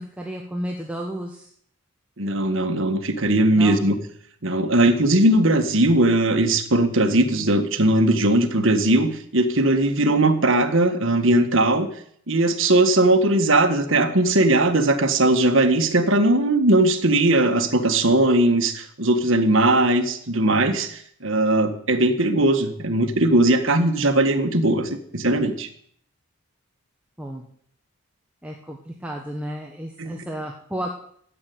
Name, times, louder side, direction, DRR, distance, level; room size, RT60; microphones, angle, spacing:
voice 1, 0.0-1.5 3.5-3.9 27.2-27.5 28.4-30.9, equal, 5° right, 0 dB, 1.2 m, -32 dB
voice 2, 2.2-4.0 4.4-11.9 12.3-25.7 30.0-30.1, right 1 dB, 60° right, 7 dB, 1.7 m, -19 dB
13.5 x 8.3 x 9.4 m, 0.63 s
head